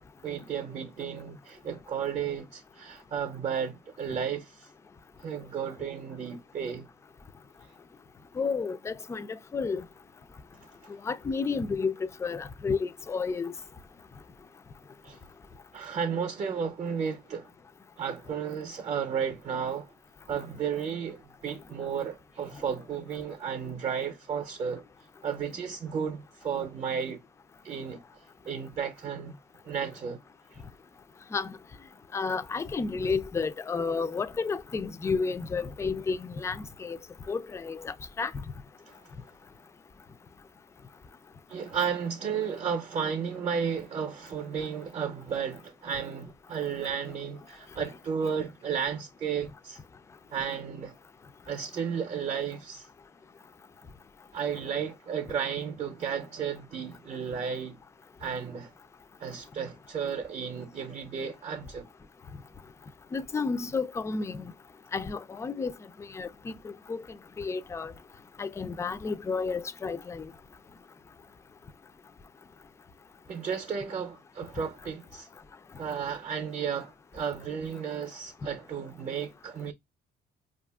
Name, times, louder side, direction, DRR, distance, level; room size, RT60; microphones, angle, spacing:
voice 1, 0.2-4.7 5.2-6.9 7.6-7.7 15.0-15.2 15.7-17.5 18.0-19.9 20.3-24.8 25.2-27.2 27.6-29.3 29.6-30.2 30.5-30.6 38.9-39.0 41.5-49.8 50.3-51.0 51.5-52.9 54.3-57.8 58.2-58.7 59.2-61.9 73.3-75.3 75.8-79.7, right 7 dB, 40° right, 0.6 m, -33 dB
voice 2, 8.4-9.9 10.9-13.5 31.3-31.6 32.1-37.0 37.3-38.3 63.1-64.5 64.9-67.1 67.4-67.9 68.4-70.3, left 4 dB, 15° left, 0.3 m, -31 dB
4.8 x 2.4 x 2.3 m
cardioid pair, 110°, 17 cm